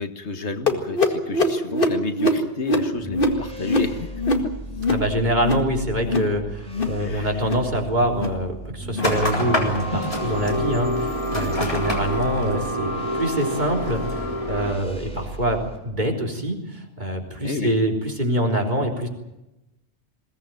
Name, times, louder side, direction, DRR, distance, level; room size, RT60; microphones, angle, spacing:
voice 1, 0.0-4.6 7.0-7.4 17.4-17.8, left 3 dB, 75° left, 8 dB, 1.9 m, -31 dB
sound 1, 0.7-5.7 6.0-6.4 6.6-7.0 7.3-7.7 8.1-8.4 8.8-9.2 9.6-9.9 10.4-10.7 11.2-11.5 12.1-12.3 13.0-13.1 13.8-13.9, left 2 dB, 50° left, 2.1 m, -24 dB
sound 2, 2.9-15.8, right 2 dB, 5° left, 4.4 m, -37 dB
voice 2, 4.9-19.1, right 1 dB, 40° right, 1 dB, 3.8 m, -25 dB
sound 3, 9.0-14.7, left 1 dB, 30° left, 4.1 m, -26 dB
21.5 x 17.5 x 9.1 m, 0.95 s
omnidirectional pair, 1.2 m